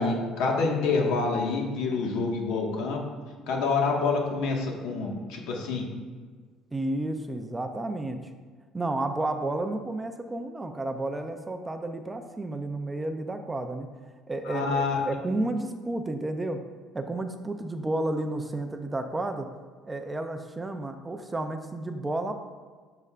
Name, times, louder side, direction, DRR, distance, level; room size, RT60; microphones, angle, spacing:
voice 1, 0.0-3.0 3.5-5.8 14.4-15.0, left 4 dB, 75° left, 0 dB, 1.5 m, -27 dB
voice 2, 6.7-8.2 8.7-13.9 14.3-16.6 16.9-19.5 19.9-22.3, right 2 dB, 10° right, 6 dB, 0.5 m, -31 dB
10.5 x 6.6 x 2.5 m, 1.5 s
cardioid pair, 155°, 0 cm